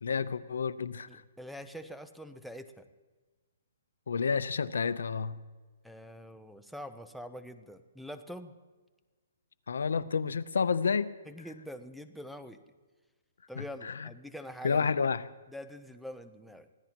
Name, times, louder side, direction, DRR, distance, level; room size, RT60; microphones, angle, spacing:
voice 1, 0.0-1.2 4.1-5.4 9.7-11.1 13.6-14.1 14.6-15.2, left 5 dB, 85° left, 16 dB, 0.6 m, -30 dB
voice 2, 1.1-2.9 5.8-8.5 11.3-12.6 13.5-15.1 15.5-16.7, equal, ahead, 9 dB, 0.6 m, -45 dB
24.0 x 16.0 x 2.9 m, 1.3 s
hypercardioid pair, 160°, 0 cm